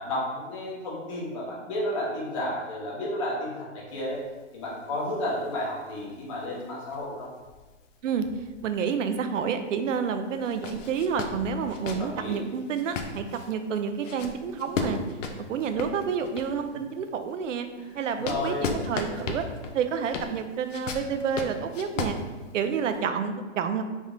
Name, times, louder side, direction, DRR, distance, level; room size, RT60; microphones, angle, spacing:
voice 1, 0.0-4.2 4.5-7.3 12.0-12.4 17.9-18.7, left 1 dB, 25° left, -5 dB, 0.8 m, -32 dB
sound 1, 3.9-9.2 9.6-9.7 10.3-16.7 17.2-23.0, left 4 dB, 85° left, 0.6 m, -36 dB
voice 2, 8.6-15.0 15.5-17.7 17.9-19.5 19.7-22.2 22.5-23.8, right 6 dB, 85° right, 8 dB, 0.5 m, -29 dB
3.5 x 2.1 x 3.7 m, 1.3 s
hypercardioid pair, 165°, 37 cm